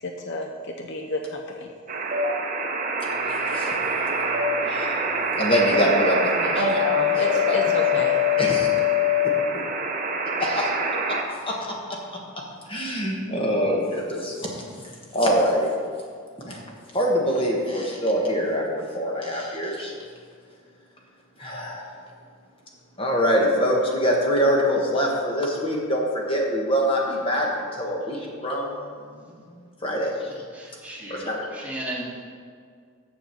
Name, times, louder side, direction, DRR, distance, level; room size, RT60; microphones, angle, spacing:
voice 1, 0.0-1.7 6.6-8.2, left 1 dB, 55° left, 3 dB, 0.6 m, -29 dB
sound 1, 1.9-11.2, left 3 dB, 35° right, 0.7 m, -24 dB
voice 2, 3.3-3.8 4.6-5.1 5.4-6.8 7.3-7.6 8.4-8.7 10.4-10.7 11.4-11.5 12.7-14.6 15.1-15.7 16.4-16.6 16.9-19.9 21.4-21.9 23.0-28.9 29.3-29.4 29.8-30.1 31.1-31.5, equal, 25° left, -2 dB, 1.3 m, -24 dB
voice 3, 30.5-32.2, right 1 dB, 5° right, -6 dB, 1.7 m, -35 dB
7.0 x 7.0 x 5.9 m, 2.1 s
head